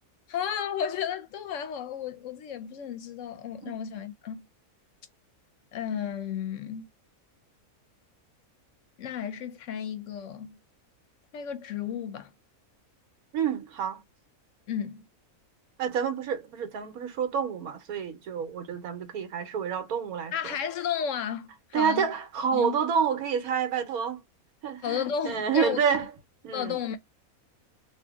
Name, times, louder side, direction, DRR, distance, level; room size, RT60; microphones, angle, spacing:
voice 1, 0.3-4.4 5.7-6.9 9.0-10.6 11.3-12.3 14.7-15.1 20.3-22.1 22.5-22.8 24.8-26.1 26.5-27.0, left 8 dB, 65° left, 0.9 m, -33 dB
voice 2, 13.3-14.0 15.8-20.3 21.7-24.2 24.6-26.1 26.4-26.8, right 7 dB, 90° right, 1.4 m, -28 dB
2.8 x 2.6 x 3.4 m
omnidirectional pair, 1.5 m